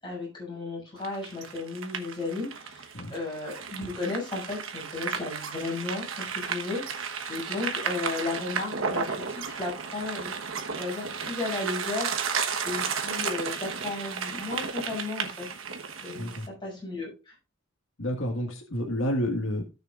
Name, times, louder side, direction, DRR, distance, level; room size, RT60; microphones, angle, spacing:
voice 1, 0.0-10.3 10.8-12.1 12.6-15.5 16.0-17.3, left 3 dB, 25° left, -3 dB, 6.5 m, -34 dB
sound 1, 1.0-16.5, right 6 dB, 85° right, 1.2 m, -33 dB
voice 2, 16.1-16.5 18.0-19.6, equal, 85° left, 2 dB, 1.7 m, -29 dB
16.5 x 6.5 x 2.4 m, 0.30 s
head